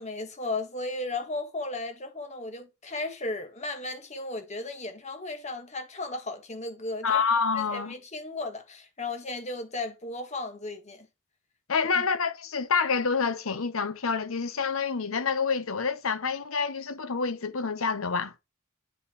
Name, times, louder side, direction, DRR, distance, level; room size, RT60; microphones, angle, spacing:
voice 1, 0.0-7.2 7.5-11.1 11.9-12.1, left 2 dB, 35° left, 1.4 m, -35 dB
voice 2, 7.0-7.9 11.7-18.3, left 5 dB, 75° left, 0.9 m, -27 dB
10.0 x 4.2 x 3.4 m
head